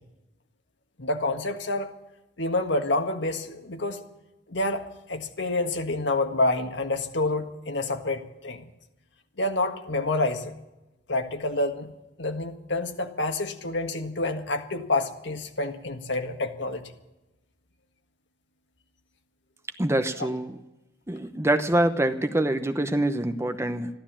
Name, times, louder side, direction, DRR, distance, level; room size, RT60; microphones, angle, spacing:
voice 1, 1.0-1.9 2.4-4.0 4.5-8.7 9.4-10.5 11.1-11.9 12.2-16.8, left 2 dB, 70° left, 6 dB, 1.6 m, -28 dB
voice 2, 19.8-20.6 21.1-23.9, right 1 dB, 15° right, 8 dB, 0.9 m, -25 dB
14.0 x 12.5 x 7.4 m, 0.99 s
head